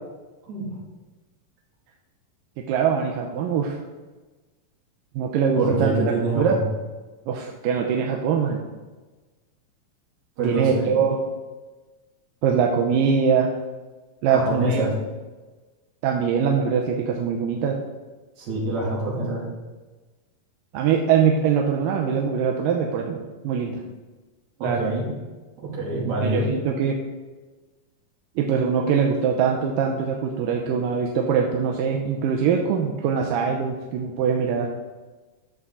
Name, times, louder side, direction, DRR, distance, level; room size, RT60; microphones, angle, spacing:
voice 1, 2.7-3.8 5.2-5.9 6.4-6.6 7.3-8.6 10.4-11.2 12.4-13.5 14.2-14.9 16.0-17.8 20.7-23.2 23.4-23.8 24.6-24.9 26.2-27.0 28.4-34.7, right 6 dB, 85° right, 1 dB, 2.4 m, -22 dB
voice 2, 5.6-6.6 10.4-10.9 14.3-14.9 18.4-19.4 24.6-25.1 25.6-26.5, right 2 dB, 55° right, -6 dB, 3.7 m, -25 dB
11.0 x 6.8 x 3.7 m, 1.2 s
omnidirectional pair, 3.9 m